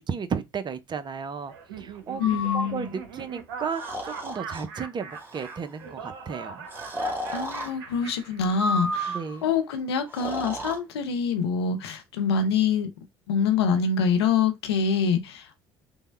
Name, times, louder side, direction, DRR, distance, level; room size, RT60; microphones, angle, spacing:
voice 1, 0.0-2.2 2.5-6.7 9.1-9.5, right 6 dB, 35° right, 0.6 m, -34 dB
Laughter, 1.5-9.0, right 5 dB, 85° right, 0.6 m, -41 dB
voice 2, 2.2-2.9 7.3-12.9 13.3-15.5, left 6 dB, 85° left, 0.7 m, -25 dB
Breathing, 2.2-2.7 3.7-4.6 5.1-5.5 6.7-7.7 8.5-9.4 10.1-10.8, equal, 15° right, 1.3 m, -31 dB
3.3 x 2.2 x 3.3 m
hypercardioid pair, 65°, 13 cm